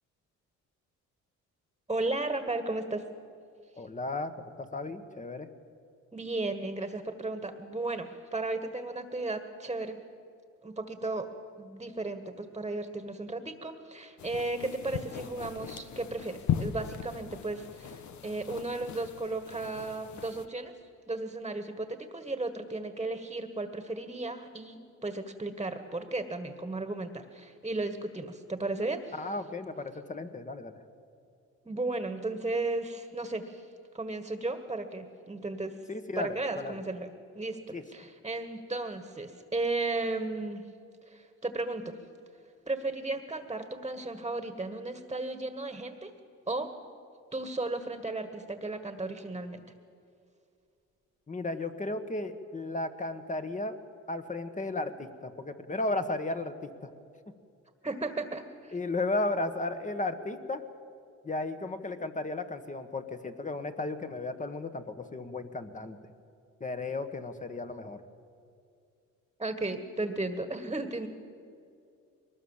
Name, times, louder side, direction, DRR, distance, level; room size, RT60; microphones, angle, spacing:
voice 1, 1.9-3.0 6.1-10.0 10.6-11.3 11.6-20.7 21.1-29.2 31.6-33.6 33.9-35.8 36.1-37.1 37.3-40.6 41.1-42.0 42.7-46.1 46.5-46.7 47.3-49.6 57.8-58.8 69.4-71.1, right 2 dB, 15° right, 8 dB, 1.7 m, -35 dB
voice 2, 3.8-5.5 29.2-30.7 35.9-36.8 37.7-37.8 51.3-53.7 54.1-56.9 58.7-60.6 61.2-66.0 66.6-68.0, left 2 dB, 25° left, 8 dB, 1.5 m, -34 dB
sound 1, 14.2-20.5, left 9 dB, 70° left, 1.1 m, -38 dB
22.5 x 19.5 x 7.4 m, 2.4 s
cardioid pair, 90°, 30 cm